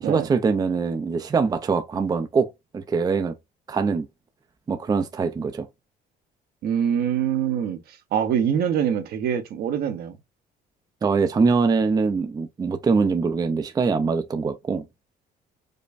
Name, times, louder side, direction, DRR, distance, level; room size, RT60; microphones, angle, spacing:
voice 1, 0.0-2.5 2.7-3.3 3.7-4.1 4.7-5.7 11.0-14.8, right 5 dB, 20° right, 0.5 m, -23 dB
voice 2, 6.6-7.8 8.1-10.1, right 8 dB, 65° right, 0.8 m, -24 dB
5.2 x 2.2 x 2.5 m
cardioid pair, 110°, 17 cm